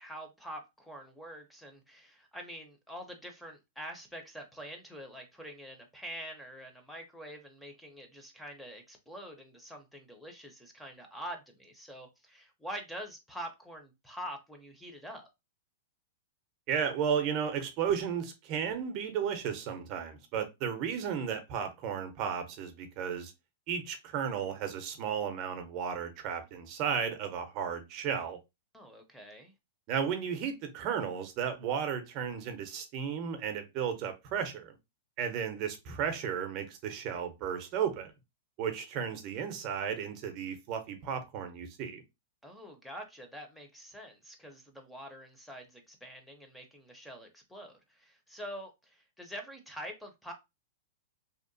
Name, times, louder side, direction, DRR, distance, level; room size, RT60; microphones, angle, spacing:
voice 1, 0.0-15.3 28.7-29.5 42.4-50.3, equal, 5° left, 0.6 m, -45 dB
voice 2, 16.7-23.3 23.7-28.4 29.9-34.8 35.2-38.1 38.6-42.0, right 7 dB, 45° right, 0.6 m, -34 dB
2.7 x 2.1 x 2.6 m
hypercardioid pair, 125°, 0 cm